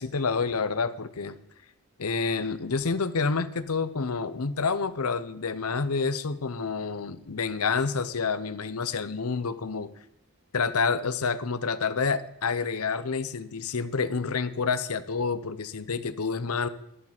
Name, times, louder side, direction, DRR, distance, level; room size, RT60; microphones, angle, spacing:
voice 1, 0.0-1.4 2.0-9.9 10.5-16.7, left 5 dB, 80° left, 14 dB, 0.8 m, -28 dB
11.0 x 11.0 x 6.0 m, 0.79 s
head